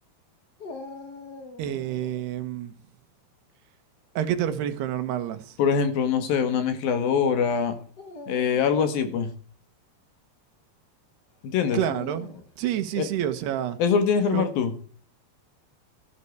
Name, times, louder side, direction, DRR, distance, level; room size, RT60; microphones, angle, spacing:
Dog, 0.6-2.3 4.3-4.8 5.6-5.7 7.9-9.1 11.6-12.6, left 3 dB, 50° left, 1.2 m, -43 dB
voice 1, 1.6-2.7 4.2-5.6 11.7-12.3 12.6-13.8 14.3-14.5, right 11 dB, 80° right, 3.2 m, -28 dB
voice 2, 5.6-7.8 8.3-9.3 11.4-11.8 13.0-13.1 13.8-14.7, left 6 dB, 65° left, 3.3 m, -23 dB
14.0 x 11.5 x 4.7 m
omnidirectional pair, 4.7 m